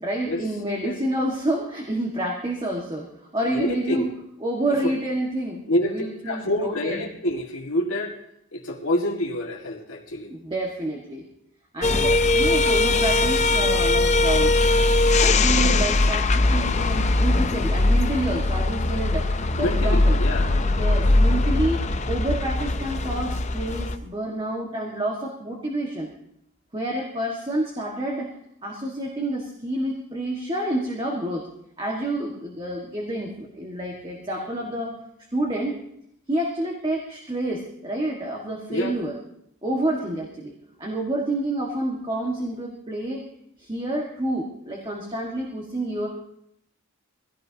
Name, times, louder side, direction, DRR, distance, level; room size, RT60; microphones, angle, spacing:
voice 1, 0.0-4.1 4.4-7.0 10.3-11.3 11.7-14.5 15.2-20.2 20.7-26.1 26.7-28.3 28.6-31.4 31.8-34.9 35.3-35.8 36.3-39.1 39.6-40.5 40.8-43.2 43.6-46.1, right 1 dB, 25° right, -1 dB, 1.6 m, -28 dB
voice 2, 3.5-4.1 4.8-4.9 5.7-8.2 8.5-10.3 19.6-20.5 38.7-39.0, left 1 dB, 70° left, -1 dB, 1.9 m, -27 dB
sound 1, 11.8-24.0, left 2 dB, 30° left, 0.6 m, -21 dB
22.5 x 17.0 x 2.8 m, 0.75 s
head